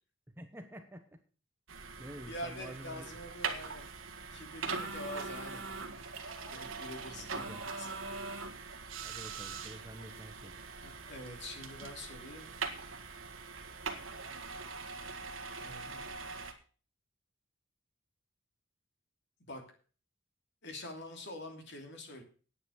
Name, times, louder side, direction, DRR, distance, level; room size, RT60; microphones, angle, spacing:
voice 1, 0.3-1.2 2.0-3.1 7.1-7.6 9.0-10.6, right 1 dB, 10° right, 7 dB, 1.1 m, -49 dB
sound 1, 1.7-16.5, right 4 dB, 65° right, 1.7 m, -42 dB
voice 2, 2.3-3.9 4.3-5.7 5.9-6.0 6.4-7.9 10.8-12.5 12.9-13.0 15.6-16.4 19.5-19.6 20.6-22.2, left 1 dB, 55° left, 4 dB, 2.8 m, -45 dB
10.0 x 8.7 x 6.4 m, 0.39 s
head